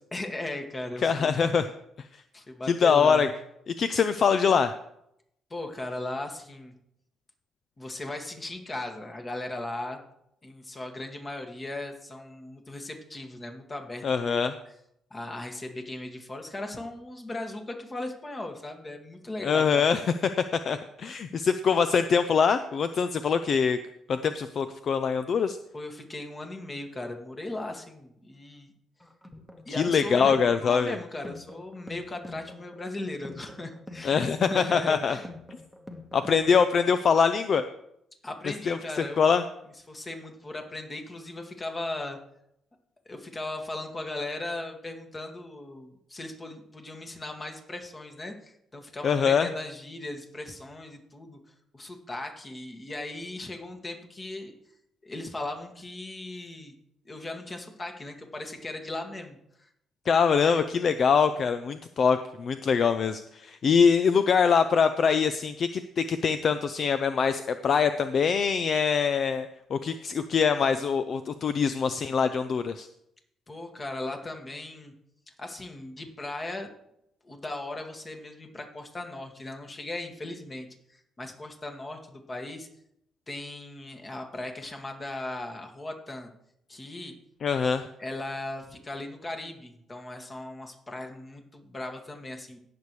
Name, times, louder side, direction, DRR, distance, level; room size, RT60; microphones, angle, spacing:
voice 1, 0.1-1.4 2.3-3.3 5.5-6.7 7.8-10.0 10.4-14.5 15.1-19.8 25.7-28.7 29.7-35.3 38.2-39.2 39.9-42.2 43.1-51.4 51.7-54.5 55.0-56.7 57.1-59.7 60.4-60.7 73.5-74.9 75.4-76.7 77.2-80.7 80.9-82.7 83.3-86.3 86.7-87.2 88.0-92.6, left 2 dB, 30° left, 3 dB, 1.9 m, -37 dB
voice 2, 1.0-1.7 2.7-3.3 3.7-4.7 14.0-14.5 19.4-20.1 20.7-23.8 24.1-25.6 29.8-31.0 34.0-35.2 36.1-37.6 38.7-39.4 49.0-49.5 60.1-72.9 87.4-87.9, left 6 dB, 55° left, 10 dB, 0.5 m, -24 dB
sound 1, 29.0-37.0, left 2 dB, 10° left, 1.4 m, -46 dB
18.0 x 6.8 x 3.2 m, 0.77 s
cardioid pair, 90°, 0 cm